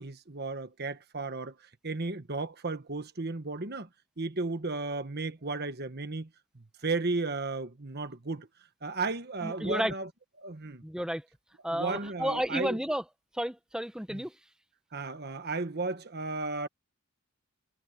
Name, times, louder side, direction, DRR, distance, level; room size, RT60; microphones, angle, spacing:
voice 1, 0.0-1.5 1.8-3.9 4.2-6.3 6.5-8.5 8.8-10.1 10.4-10.8 11.7-12.8 14.1-14.2 14.9-16.7, right 3 dB, 45° right, 1.3 m, -34 dB
voice 2, 9.4-9.9 10.8-11.2 11.6-13.0 13.3-14.3, equal, 5° right, 1.0 m, -32 dB
head